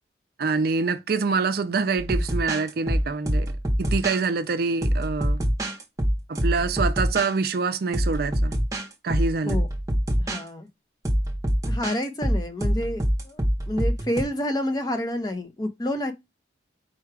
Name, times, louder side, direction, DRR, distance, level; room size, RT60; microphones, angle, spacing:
voice 1, 0.4-3.5 3.8-5.4 6.3-8.5 9.0-9.6, right 4 dB, 55° right, 0.4 m, -25 dB
sound 1, 2.0-4.2 4.8-7.3 7.9-8.9 9.1-10.4 11.1-14.2, equal, 20° right, 0.8 m, -25 dB
voice 2, 10.2-10.7 11.7-13.4 13.7-16.1, left 1 dB, 20° left, 0.6 m, -28 dB
4.6 x 2.3 x 4.7 m
head